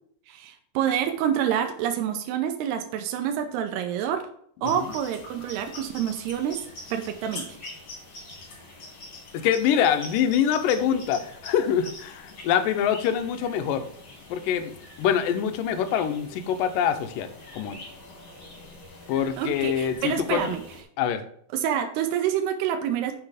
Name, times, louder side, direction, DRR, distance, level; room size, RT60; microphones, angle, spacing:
voice 1, 0.3-4.3 4.6-6.6 6.9-7.5 19.4-20.6 21.5-23.1, right 9 dB, 85° right, 6 dB, 2.8 m, -27 dB
voice 2, 4.6-4.9 9.3-13.9 14.3-17.8 19.1-20.5 21.0-21.2, left 9 dB, 75° left, 8 dB, 2.1 m, -25 dB
sound 1, 4.6-20.8, left 2 dB, 40° left, 2.0 m, -44 dB
6.9 x 6.0 x 5.0 m, 0.64 s
omnidirectional pair, 4.7 m